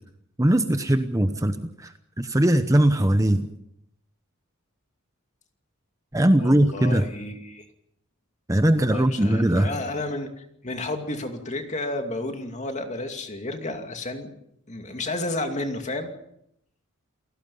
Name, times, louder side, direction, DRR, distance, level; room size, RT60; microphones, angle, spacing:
voice 1, 0.4-3.5 6.1-7.1 8.5-9.7, right 1 dB, 15° right, 9 dB, 0.9 m, -20 dB
voice 2, 6.4-7.7 8.9-14.3 14.7-16.1, left 2 dB, 35° left, 5 dB, 2.5 m, -32 dB
29.0 x 17.5 x 5.6 m, 0.75 s
head